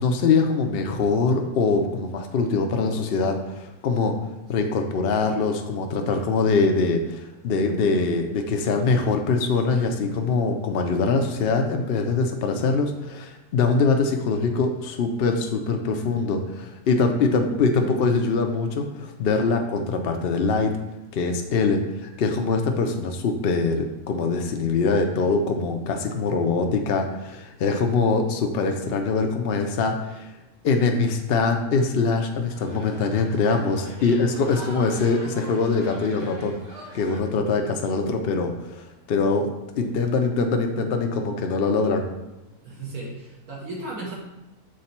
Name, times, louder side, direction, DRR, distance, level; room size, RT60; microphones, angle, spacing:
voice 1, 0.0-4.1 4.5-20.7 21.1-30.3 30.6-36.6 36.9-39.5 39.8-42.0, left 4 dB, 70° left, 4 dB, 0.5 m, -23 dB
sound 1, 32.3-37.2, right 1 dB, 55° right, 2.1 m, -43 dB
voice 2, 42.6-44.1, right 2 dB, 75° right, -3 dB, 1.7 m, -35 dB
6.4 x 4.0 x 4.2 m, 1.0 s
omnidirectional pair, 1.6 m